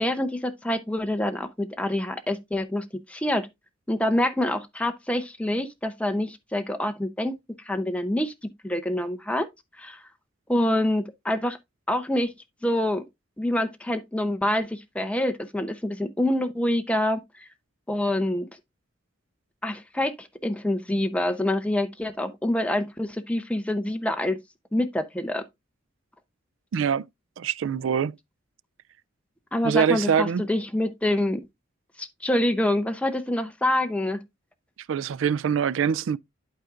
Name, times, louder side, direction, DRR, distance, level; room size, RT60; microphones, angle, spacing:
voice 1, 0.0-3.5 3.9-7.3 7.6-9.5 9.8-10.0 10.5-11.6 11.9-12.3 12.6-13.0 13.4-17.5 17.9-18.5 19.6-24.4 24.7-25.4 29.5-31.4 32.0-34.2, left 1 dB, 5° left, 0.7 m, -26 dB
voice 2, 26.7-27.1 27.4-28.2 29.6-30.5 34.9-36.2, right 7 dB, 65° right, 0.3 m, -24 dB
11.5 x 4.7 x 2.4 m
head